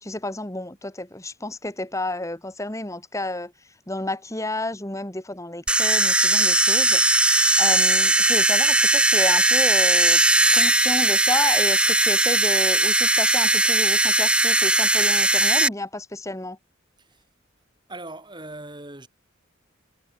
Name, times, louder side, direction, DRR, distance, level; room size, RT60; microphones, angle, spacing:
voice 1, 0.0-3.5 3.9-7.0 7.6-10.2 10.5-16.6, left 2 dB, 15° left, 1.9 m, -31 dB
sound 1, 5.7-15.7, right 2 dB, 5° right, 1.0 m, -19 dB
voice 2, 17.9-19.1, right 2 dB, 20° right, 7.3 m, -39 dB
head